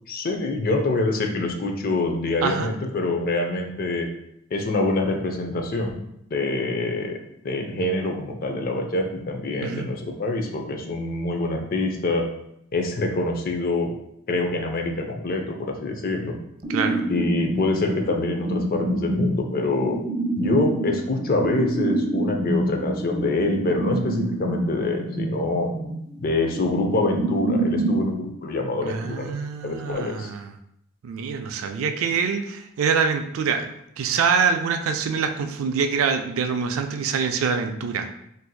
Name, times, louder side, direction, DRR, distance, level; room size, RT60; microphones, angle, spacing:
voice 1, 0.1-4.1 4.5-6.0 6.3-7.2 7.4-12.3 12.7-13.9 14.3-16.4 17.1-20.0 20.3-25.7 26.2-29.3 29.6-30.3, left 2 dB, 45° left, 3 dB, 0.5 m, -25 dB
voice 2, 2.4-2.7 9.6-9.9 16.7-17.0 28.8-30.4 31.0-33.7 34.0-38.1, right 6 dB, 85° right, 6 dB, 0.4 m, -25 dB
sound 1, 16.6-28.1, right 1 dB, 25° right, 0.9 m, -27 dB
4.3 x 2.6 x 2.2 m, 0.77 s
head